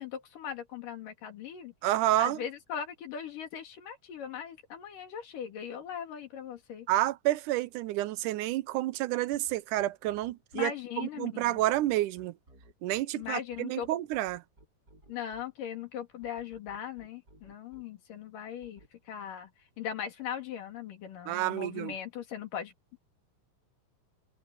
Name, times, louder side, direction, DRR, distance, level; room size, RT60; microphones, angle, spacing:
voice 1, 0.0-1.7 2.2-6.9 10.5-11.6 13.2-13.9 15.1-19.5 19.8-22.7, left 8 dB, 85° left, 4.2 m, -39 dB
voice 2, 1.8-2.4 6.9-10.7 11.0-12.3 12.8-14.4 21.3-21.9, right 15 dB, 85° right, 2.1 m, -29 dB
sound 1, 9.3-10.6 11.4-15.4 16.2-17.8 18.6-18.9, right 1 dB, 25° right, 7.5 m, -57 dB
omnidirectional pair, 3.7 m